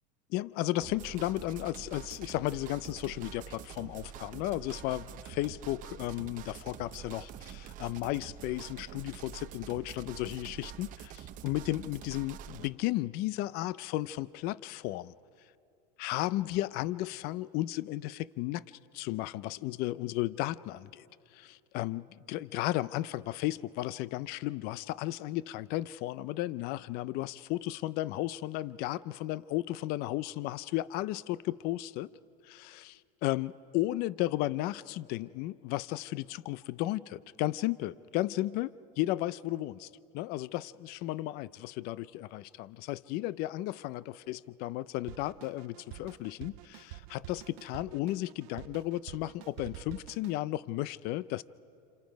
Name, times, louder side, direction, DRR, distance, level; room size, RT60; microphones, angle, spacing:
voice 1, 0.3-15.1 16.0-18.6 18.9-21.0 21.3-32.1 32.4-51.4, left 16 dB, 50° left, 0.5 m, -34 dB
sound 1, 0.8-12.7, right 10 dB, 40° right, 0.9 m, -46 dB
Drum kit, 45.1-50.4, right 19 dB, 70° right, 0.5 m, -48 dB
28.0 x 27.5 x 5.2 m
supercardioid pair, 145°, 21 cm